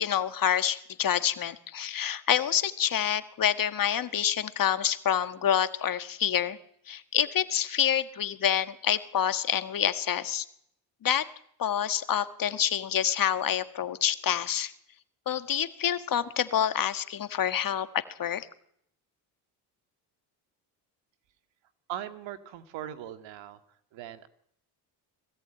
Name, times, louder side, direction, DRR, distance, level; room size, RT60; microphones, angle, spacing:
voice 1, 0.0-6.6 6.9-10.5 11.0-11.3 11.6-14.7 15.3-18.5, left 9 dB, 45° left, 11 dB, 1.6 m, -27 dB
voice 2, 21.9-23.6 23.9-24.3, right 11 dB, 75° right, 10 dB, 2.0 m, -39 dB
21.5 x 16.0 x 9.0 m, 0.70 s
supercardioid pair, 80°, 45 cm